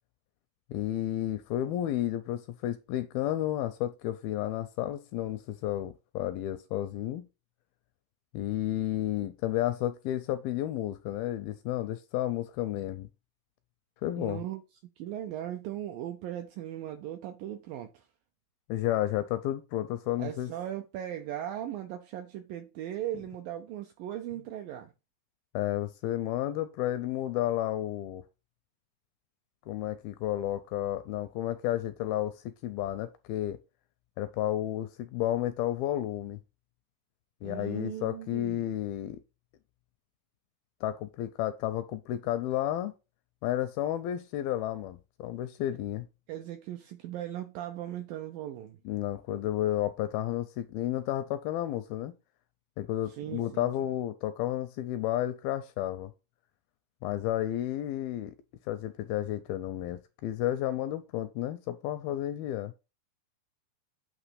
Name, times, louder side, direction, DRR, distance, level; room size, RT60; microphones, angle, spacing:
voice 1, 0.7-7.3 8.3-13.1 14.0-14.4 18.7-20.5 25.5-28.2 29.7-33.6 34.2-36.4 37.4-39.2 40.8-42.9 43.4-46.1 48.9-52.1 52.8-56.1 57.0-58.4 58.7-62.7, left 13 dB, 85° left, 2.2 m, -32 dB
voice 2, 14.2-14.6 15.0-18.1 20.2-24.9 37.4-38.7 46.3-48.8 53.1-53.7, right 12 dB, 80° right, 2.0 m, -38 dB
9.0 x 3.0 x 5.7 m
omnidirectional pair, 4.7 m